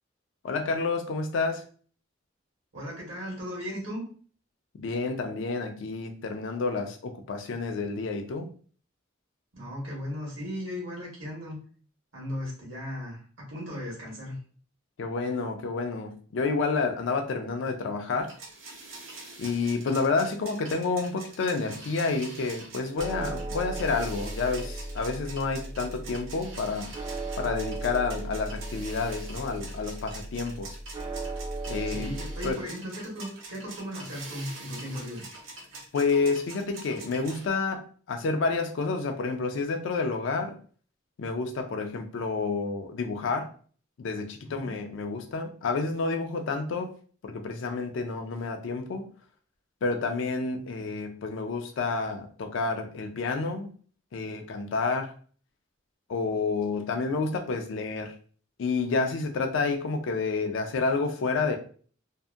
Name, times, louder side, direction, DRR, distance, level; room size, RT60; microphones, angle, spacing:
voice 1, 0.4-1.6 4.8-8.5 15.0-18.3 19.4-26.9 27.4-30.8 31.7-32.1 32.4-32.6 35.9-40.6 41.2-43.5 44.0-46.9 47.2-49.0 49.8-53.7 54.1-55.1 56.1-58.1 58.6-61.6, left 4 dB, 70° left, 5 dB, 0.4 m, -29 dB
voice 2, 2.7-4.0 9.5-11.6 12.1-14.4 31.9-35.3 44.4-44.7, equal, 70° right, -3 dB, 1.1 m, -36 dB
sound 1, 18.2-37.5, right 3 dB, 85° right, 0.7 m, -45 dB
sound 2, 23.0-32.5, right 2 dB, 25° right, 0.4 m, -37 dB
2.6 x 2.5 x 2.3 m, 0.43 s
head